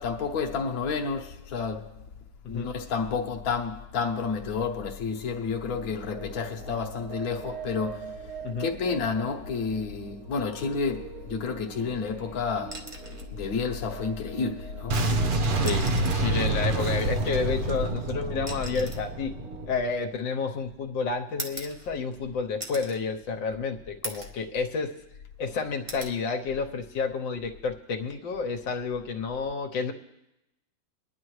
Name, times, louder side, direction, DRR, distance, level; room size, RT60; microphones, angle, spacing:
voice 1, 0.0-2.0 2.5-8.3 8.6-13.0 13.3-15.0, left 5 dB, 55° left, 1.4 m, -30 dB
sound 1, 5.7-19.7, right 6 dB, 55° right, 1.3 m, -44 dB
sound 2, 12.6-13.3 14.8-14.9 15.5-16.3 17.5-20.6 21.4-22.2 22.6-23.0 23.5-23.6 24.0-24.4 24.8-25.5 25.9-26.2 27.7-27.9, right 1 dB, 25° right, 0.7 m, -41 dB
Boom, 14.9-19.8, right 2 dB, 80° right, 0.4 m, -27 dB
voice 2, 15.5-15.9 16.1-19.3 19.7-24.9 25.4-29.9, left 5 dB, 75° left, 1.6 m, -30 dB
23.5 x 10.5 x 3.2 m
omnidirectional pair, 2.1 m